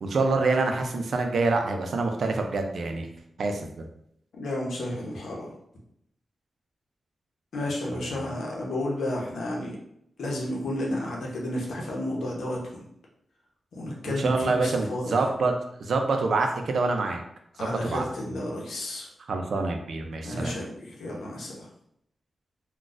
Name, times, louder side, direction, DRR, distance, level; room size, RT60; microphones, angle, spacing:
voice 1, 0.0-3.1 3.4-3.8 14.2-15.5 15.8-17.2 17.6-18.1 19.3-20.6, right 3 dB, 65° right, 4 dB, 0.4 m, -26 dB
voice 2, 4.3-5.5 7.5-9.8 10.2-12.8 13.8-15.2 17.6-19.1 20.2-21.7, left 1 dB, 85° left, -2 dB, 0.8 m, -32 dB
3.9 x 2.3 x 2.4 m, 0.74 s
wide cardioid pair, 115°, 0 cm